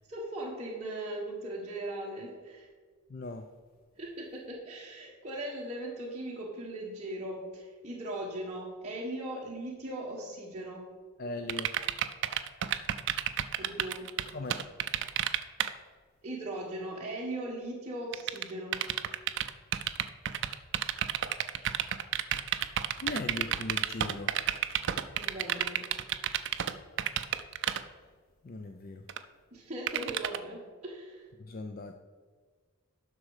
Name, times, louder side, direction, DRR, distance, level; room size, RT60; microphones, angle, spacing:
voice 1, 0.1-2.7 4.0-10.8 13.6-14.1 16.2-18.8 25.2-25.8 29.5-31.3, right 1 dB, 30° right, -5 dB, 1.2 m, -39 dB
voice 2, 3.1-3.5 11.2-11.7 14.3-14.6 23.0-24.3 28.4-29.0 31.4-31.9, left 2 dB, 40° left, 6 dB, 0.4 m, -38 dB
sound 1, 11.5-15.7 18.1-26.7 27.0-27.8 29.1-29.2 29.9-30.4, right 11 dB, 55° right, 0.4 m, -30 dB
10.5 x 6.3 x 4.8 m, 1.5 s
head